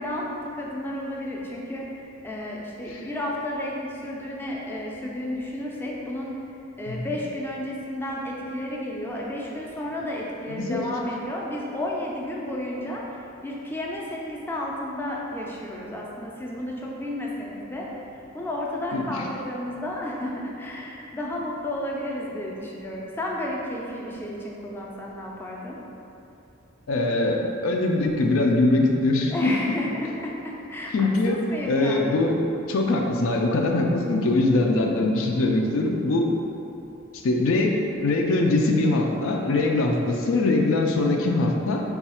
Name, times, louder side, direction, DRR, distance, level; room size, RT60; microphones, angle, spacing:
voice 1, 0.0-1.8 2.2-6.3 6.8-17.9 18.3-25.8 29.3-32.3, left 1 dB, 10° left, -3 dB, 0.4 m, -32 dB
voice 2, 10.5-10.8 18.9-19.3 26.9-29.6 30.9-31.4 31.6-32.4 32.7-36.3 37.2-41.8, left 2 dB, 80° left, 1 dB, 0.4 m, -22 dB
4.0 x 2.3 x 4.2 m, 2.8 s
head